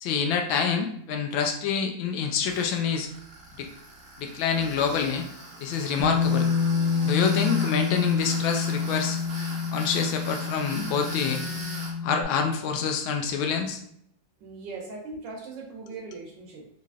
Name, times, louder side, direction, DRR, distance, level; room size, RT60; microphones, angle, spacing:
voice 1, 0.0-3.1 3.6-3.7 4.2-5.3 5.6-6.5 7.0-9.2 9.7-11.4 12.0-13.8, left 6 dB, 85° left, 4 dB, 1.4 m, -27 dB
Tools, 2.4-11.9, right 1 dB, 35° right, 0.9 m, -40 dB
Bass guitar, 6.0-12.2, left 5 dB, 65° left, 1.3 m, -27 dB
voice 2, 14.4-16.7, right 3 dB, 75° right, 0 dB, 1.3 m, -39 dB
4.0 x 3.0 x 2.3 m, 0.71 s
omnidirectional pair, 2.1 m